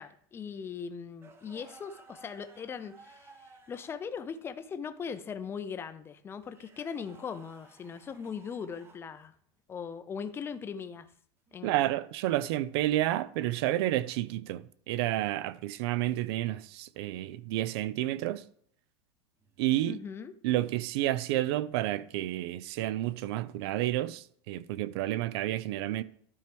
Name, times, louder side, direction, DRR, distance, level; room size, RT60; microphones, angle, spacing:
voice 1, 0.0-9.3 9.7-11.1 11.5-11.8 19.9-20.3, left 6 dB, 15° left, 0.5 m, -40 dB
sound 1, 1.2-4.3 6.4-9.1 11.5-11.7 13.9-14.3 17.1-17.4 19.4-19.7, right 3 dB, 15° right, 0.7 m, -57 dB
voice 2, 11.6-18.4 19.6-20.0 20.4-26.0, right 15 dB, 65° right, 0.5 m, -30 dB
12.0 x 4.6 x 3.4 m
supercardioid pair, 155°, 15 cm